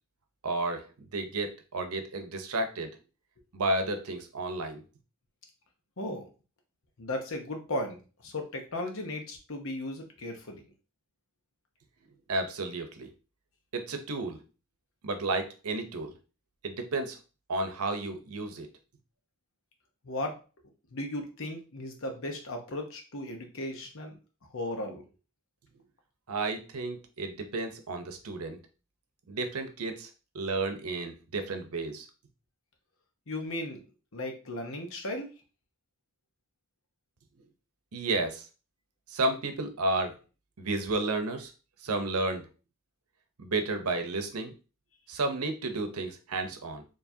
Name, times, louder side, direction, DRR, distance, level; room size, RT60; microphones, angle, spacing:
voice 1, 0.4-0.9 1.1-3.0 3.5-4.8 12.3-13.1 13.7-14.4 15.0-16.1 16.6-17.2 17.5-18.7 26.3-28.6 29.3-30.1 30.3-32.1 37.9-38.5 39.1-40.2 40.6-41.5 41.8-42.5 43.4-44.5 45.1-46.8, right 2 dB, 85° right, 7 dB, 0.7 m, -32 dB
voice 2, 6.0-6.3 7.0-10.6 20.0-20.4 20.9-24.2 24.5-25.0 33.3-33.8 34.1-35.3, left 1 dB, 65° left, 3 dB, 1.0 m, -36 dB
4.7 x 3.0 x 2.7 m, 0.33 s
head